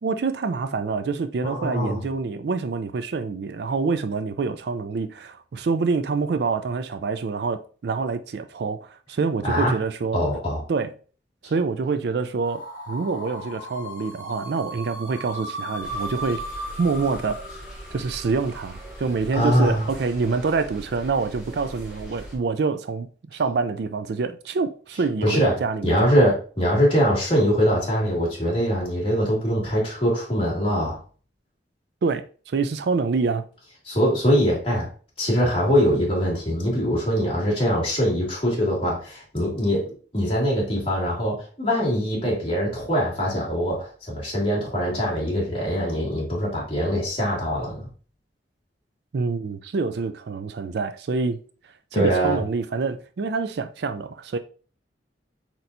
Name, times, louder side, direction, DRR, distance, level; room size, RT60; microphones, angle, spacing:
voice 1, 0.0-10.2 10.7-10.9 11.4-12.6 12.9-16.4 16.8-17.4 17.9-26.1 32.0-33.5 49.1-51.4 51.9-54.4, right 4 dB, 65° right, 0.4 m, -26 dB
voice 2, 1.4-2.0 9.4-9.8 10.1-10.6 11.4-11.5 19.3-19.9 25.2-25.5 25.8-31.0 33.9-34.9 35.2-47.9 51.9-52.4, equal, 30° left, 2.1 m, -23 dB
sound 1, 12.4-19.4, equal, 50° left, 1.1 m, -37 dB
sound 2, 15.8-22.4, right 1 dB, 5° right, 1.9 m, -41 dB
4.4 x 4.2 x 2.6 m
head